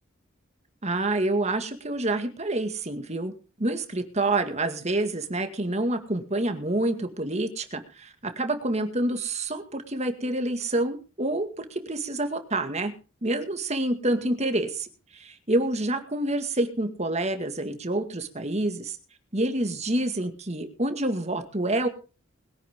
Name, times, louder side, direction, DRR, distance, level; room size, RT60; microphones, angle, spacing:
voice 1, 0.8-3.3 3.6-12.9 13.2-19.0 19.3-21.9, right 2 dB, 30° right, 7 dB, 2.0 m, -27 dB
21.5 x 10.0 x 3.7 m, 0.35 s
head